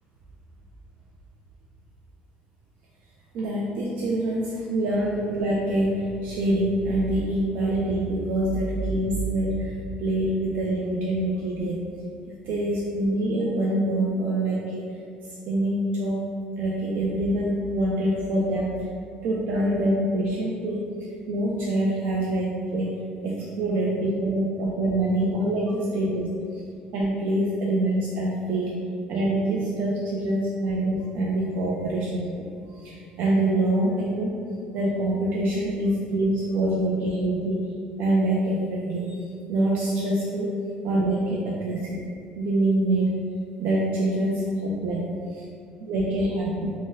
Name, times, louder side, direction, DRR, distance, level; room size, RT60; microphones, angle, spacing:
voice 1, 3.3-11.8 12.4-14.8 15.3-16.2 16.6-18.9 19.2-20.8 21.3-26.6 26.9-28.8 29.1-32.3 32.7-34.4 34.7-37.7 38.0-39.2 39.5-40.5 40.8-42.0 42.4-43.2 43.6-45.4 45.8-46.7, right 1 dB, 60° right, -4 dB, 0.3 m, -25 dB
2.6 x 2.1 x 3.7 m, 2.3 s
cardioid pair, 175°, 3 cm